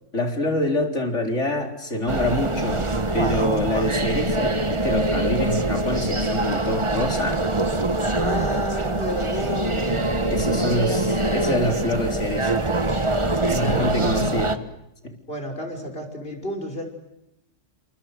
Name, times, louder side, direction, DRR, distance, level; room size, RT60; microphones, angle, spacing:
voice 1, 0.1-2.9 3.1-7.4 10.3-12.6 13.4-14.6 15.0-15.2, left 1 dB, 65° left, 3 dB, 4.4 m, -26 dB
sound 1, 2.1-14.6, right 2 dB, 25° right, 1.4 m, -24 dB
voice 2, 8.2-10.2 10.5-11.6 13.6-13.9 15.3-16.9, equal, 45° left, 3 dB, 6.4 m, -31 dB
30.0 x 27.0 x 6.6 m, 0.87 s
omnidirectional pair, 1.3 m